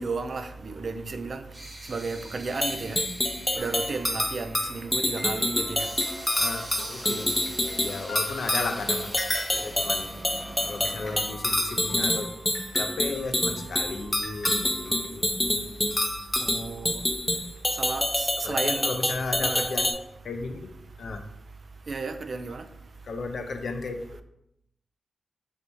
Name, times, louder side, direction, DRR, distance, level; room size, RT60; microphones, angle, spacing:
voice 1, 0.0-1.4 1.9-3.0 3.6-5.9 16.4-17.0 17.8-18.9 19.4-19.7 21.9-22.6, right 4 dB, 50° right, 0.3 m, -33 dB
sound 1, 0.7-11.2, right 1 dB, 20° right, 0.8 m, -44 dB
sound 2, 2.6-19.9, left 1 dB, 10° left, 0.5 m, -27 dB
sound 3, 3.6-4.5 5.1-15.1, left 1 dB, 35° left, 0.9 m, -45 dB
voice 2, 6.4-9.2 9.5-10.1 10.7-12.3 12.7-16.1 18.4-20.7 21.0-21.2 23.0-24.2, left 3 dB, 70° left, 0.4 m, -35 dB
3.3 x 2.7 x 4.4 m
wide cardioid pair, 125°, 0 cm